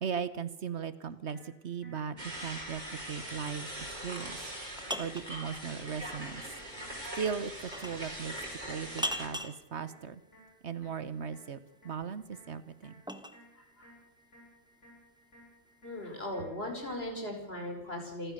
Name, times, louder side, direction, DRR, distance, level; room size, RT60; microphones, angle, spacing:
voice 1, 0.0-4.4 5.0-6.4 7.1-7.5 7.8-8.4 8.7-10.2 10.6-13.0, right 7 dB, 60° right, 15 dB, 1.2 m, -38 dB
sound 1, 1.3-17.3, equal, 70° left, 7.9 m, -60 dB
sound 2, 2.2-9.3, right 1 dB, 35° right, 4.6 m, -42 dB
sound 3, 4.3-5.3 7.7-8.1 9.0-9.6 11.9-13.4, equal, 5° right, 1.3 m, -38 dB
voice 2, 13.6-13.9 15.8-18.3, left 1 dB, 50° left, 3 dB, 5.1 m, -38 dB
27.5 x 15.0 x 6.7 m, 0.83 s
omnidirectional pair, 1.3 m